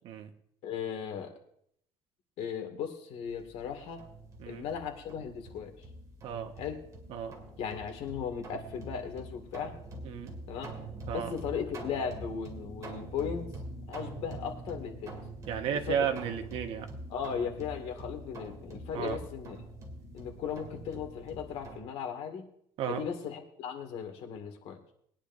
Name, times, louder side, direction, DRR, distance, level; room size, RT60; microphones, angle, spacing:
voice 1, 0.6-1.3 2.4-4.0 4.5-5.7 6.6-6.8 7.6-9.8 10.5-10.7 11.1-13.5 13.9-15.2 15.7-16.1 17.1-19.6 20.1-22.5 22.9-24.8, left 7 dB, 70° left, 5 dB, 2.1 m, -37 dB
sound 1, 3.2-21.8, right 1 dB, 30° right, 2.3 m, -45 dB
voice 2, 15.5-16.9 18.9-19.2 22.8-23.0, right 8 dB, 60° right, 6 dB, 1.3 m, -33 dB
21.5 x 10.0 x 2.6 m, 0.68 s
cardioid pair, 160°, 11 cm